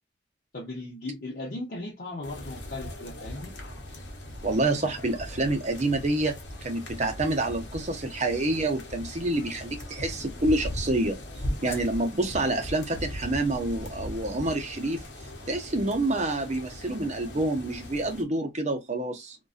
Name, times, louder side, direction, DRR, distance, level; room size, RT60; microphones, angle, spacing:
voice 1, 0.5-3.5, left 2 dB, 55° left, 0.7 m, -37 dB
sound 1, 2.2-18.2, left 1 dB, 85° left, 0.8 m, -39 dB
voice 2, 4.4-6.4 6.6-11.2 11.6-15.0 15.5-19.4, right 2 dB, 40° right, 0.6 m, -27 dB
2.5 x 2.2 x 2.4 m
head